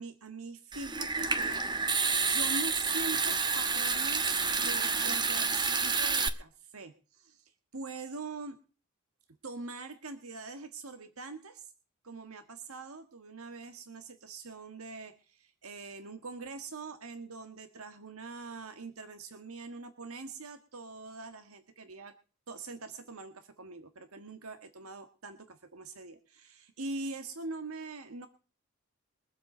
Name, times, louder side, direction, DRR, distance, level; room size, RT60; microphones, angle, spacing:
voice 1, 0.0-1.6 1.9-8.6 9.4-11.7 12.0-22.1 22.5-28.3, right 3 dB, 80° right, 8 dB, 1.6 m, -43 dB
Water tap faucet / Sink (filling or washing) / Trickle dribble, 0.7-6.3, right 4 dB, 20° right, 1.1 m, -29 dB
23.5 x 7.9 x 4.3 m, 0.36 s
head